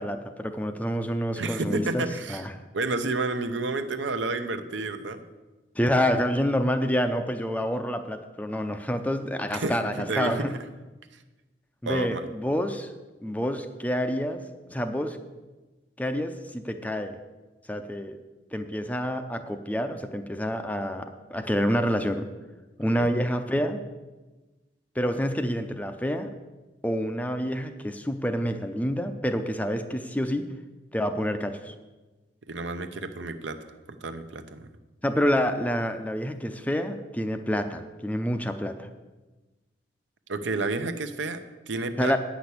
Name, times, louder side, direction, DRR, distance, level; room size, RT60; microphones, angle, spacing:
voice 1, 0.0-2.5 5.8-10.5 11.8-12.9 13.2-15.2 16.0-17.2 17.7-18.2 18.5-22.3 22.8-23.8 25.0-26.3 26.8-30.5 30.9-31.7 35.0-38.9 42.0-42.2, equal, 10° left, 8 dB, 0.5 m, -28 dB
voice 2, 1.4-2.5 2.7-5.2 5.9-6.1 9.5-10.6 11.8-12.3 23.0-23.1 32.5-34.7 40.3-42.2, right 3 dB, 75° right, 9 dB, 0.8 m, -31 dB
9.5 x 6.1 x 8.2 m, 1.2 s
head